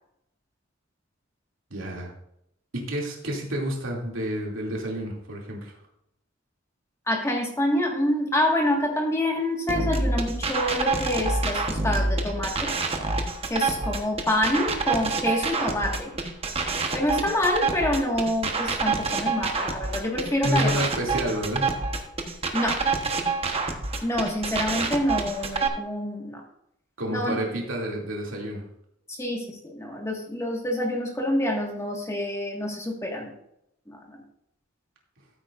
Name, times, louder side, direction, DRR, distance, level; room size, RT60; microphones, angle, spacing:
voice 1, 1.7-2.1 2.7-5.7 20.4-21.6 27.0-28.6, equal, 85° right, -1 dB, 2.6 m, -29 dB
voice 2, 7.1-12.7 13.5-16.1 16.9-20.9 22.5-22.8 24.0-26.4 27.1-27.4 29.1-33.3 33.9-34.2, left 1 dB, 15° left, 1 dB, 1.7 m, -27 dB
sound 1, 9.7-25.7, right 3 dB, 30° right, 1.1 m, -27 dB
14.0 x 8.3 x 2.5 m, 0.77 s
head